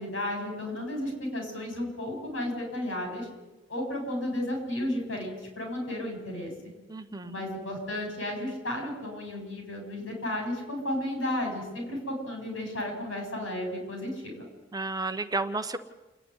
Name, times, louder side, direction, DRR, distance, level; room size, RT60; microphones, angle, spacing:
voice 1, 0.0-3.3 3.7-6.5 7.2-14.5, left 1 dB, 85° left, 2 dB, 7.8 m, -33 dB
voice 2, 6.9-7.5 14.7-15.8, right 3 dB, 20° right, 9 dB, 0.9 m, -32 dB
29.0 x 9.7 x 9.6 m, 1.1 s
head